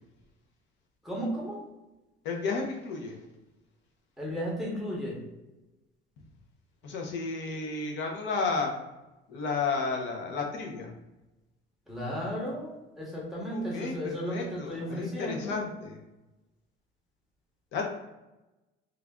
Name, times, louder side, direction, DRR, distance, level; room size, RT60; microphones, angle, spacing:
voice 1, 1.0-1.6 4.2-5.2 11.9-15.6, equal, ahead, -5 dB, 0.8 m, -34 dB
voice 2, 2.2-3.2 6.8-8.7 9.3-10.9 13.5-16.0 17.7-17.8, left 4 dB, 70° left, 1 dB, 0.7 m, -32 dB
3.3 x 2.4 x 3.5 m, 1.0 s
cardioid pair, 170°, 20 cm